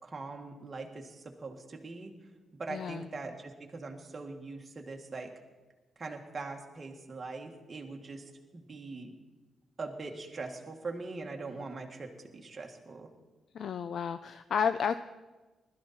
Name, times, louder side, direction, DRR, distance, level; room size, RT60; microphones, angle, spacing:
voice 1, 0.0-2.1 2.5-5.3 6.0-9.1 9.8-13.1, right 3 dB, 25° right, 1 dB, 1.7 m, -42 dB
voice 2, 2.7-3.1 13.5-15.0, left 7 dB, 55° left, 11 dB, 0.4 m, -31 dB
20.5 x 12.5 x 4.3 m, 1.2 s
wide cardioid pair, 175°, 0 cm